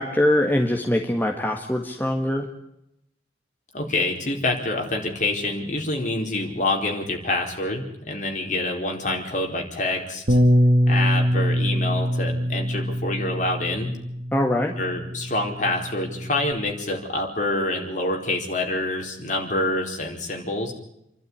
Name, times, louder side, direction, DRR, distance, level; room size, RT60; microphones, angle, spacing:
voice 1, 0.0-2.5 14.3-14.7, left 1 dB, 10° left, 2 dB, 1.7 m, -22 dB
voice 2, 3.7-10.4 10.9-13.9 14.8-20.7, left 2 dB, 45° left, 2 dB, 4.3 m, -26 dB
Bass guitar, 10.3-16.5, equal, 55° right, 1.9 m, -23 dB
28.5 x 12.0 x 10.0 m, 0.82 s
head